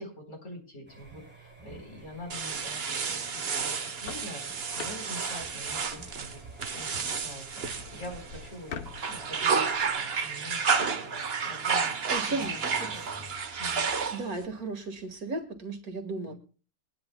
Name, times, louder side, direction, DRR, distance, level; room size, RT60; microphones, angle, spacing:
voice 1, 0.0-4.4 4.8-6.4 6.8-7.6 7.9-8.7 9.0-13.3 13.6-13.9 16.3-16.4, left 1 dB, 50° left, 2 dB, 4.4 m, -45 dB
sound 1, 0.9-15.4, right 3 dB, 5° right, 4.0 m, -53 dB
sound 2, 2.3-8.5 8.9-14.4, right 5 dB, 45° right, 1.2 m, -31 dB
sound 3, 3.7-9.5, left 7 dB, 75° left, 1.4 m, -46 dB
voice 2, 12.1-12.9 14.1-16.3, right 3 dB, 70° right, 6 dB, 2.4 m, -35 dB
22.5 x 10.5 x 2.2 m, 0.35 s
omnidirectional pair, 1.6 m